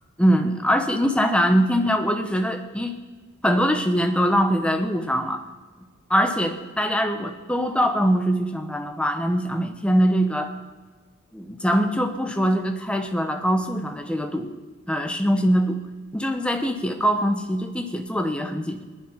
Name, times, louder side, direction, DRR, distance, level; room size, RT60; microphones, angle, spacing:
voice 1, 0.2-2.9 3.4-5.4 6.1-10.5 11.3-14.6 14.9-15.8 16.1-18.8, equal, 5° left, 6 dB, 1.1 m, -22 dB
18.5 x 11.0 x 5.8 m, 1.4 s
head